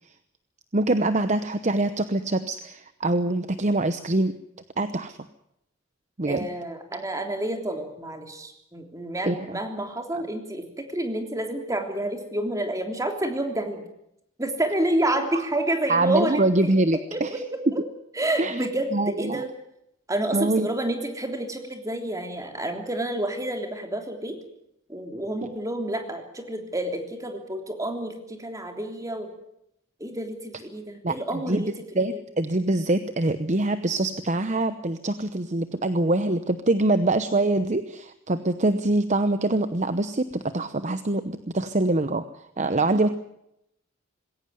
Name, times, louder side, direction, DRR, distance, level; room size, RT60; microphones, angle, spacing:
voice 1, 0.7-4.4 4.8-5.2 6.2-6.5 9.2-9.6 15.3-15.4 15.9-17.4 18.4-19.4 20.3-20.7 25.4-25.5 31.0-31.7 31.9-42.3 42.6-43.1, right 2 dB, 35° right, 11 dB, 0.9 m, -24 dB
voice 2, 6.3-13.8 14.4-16.8 17.1-17.6 18.2-19.5 20.1-24.4 24.9-29.3 30.0-31.7 32.0-32.1, right 1 dB, 15° right, 4 dB, 3.3 m, -29 dB
20.5 x 17.5 x 9.4 m, 0.80 s
head